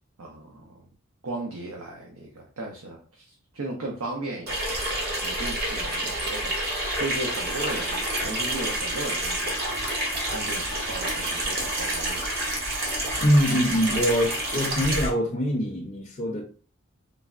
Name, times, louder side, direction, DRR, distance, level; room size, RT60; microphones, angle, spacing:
voice 1, 0.2-0.8 1.2-3.2 3.5-4.8 5.2-9.5 10.3-12.6, right 2 dB, 90° right, -1 dB, 0.6 m, -36 dB
Water tap faucet / Sink (filling or washing), 4.5-15.1, right 1 dB, 50° right, 0.8 m, -28 dB
voice 2, 13.2-16.4, equal, 35° left, -1 dB, 0.4 m, -23 dB
3.3 x 2.1 x 2.4 m, 0.40 s
head